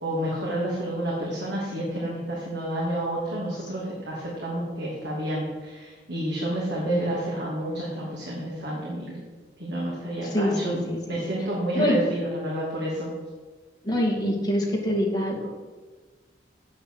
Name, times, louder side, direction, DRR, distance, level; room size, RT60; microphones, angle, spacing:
voice 1, 0.0-9.2 9.6-10.8 11.1-13.1, right 1 dB, 75° right, -5 dB, 2.7 m, -29 dB
voice 2, 10.2-11.2 11.7-12.0 13.8-15.5, equal, 20° left, -2 dB, 2.4 m, -25 dB
8.3 x 8.0 x 8.0 m, 1.4 s
head